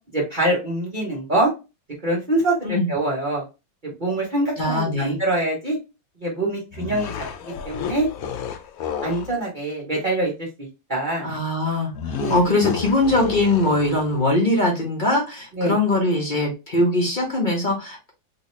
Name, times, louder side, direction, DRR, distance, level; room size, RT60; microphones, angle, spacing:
voice 1, 0.1-1.5 2.0-3.4 3.8-5.8 6.2-7.1 7.6-8.1 9.0-11.3 12.2-12.4 15.5-15.7, right 1 dB, 35° right, -3 dB, 0.9 m, -24 dB
voice 2, 4.6-5.2 11.2-11.9 12.3-18.1, left 2 dB, 40° left, -1 dB, 0.7 m, -21 dB
sound 1, 6.7-9.3 11.9-14.2, left 7 dB, 80° left, 0.8 m, -31 dB
3.1 x 2.8 x 3.1 m, 0.27 s
omnidirectional pair, 2.1 m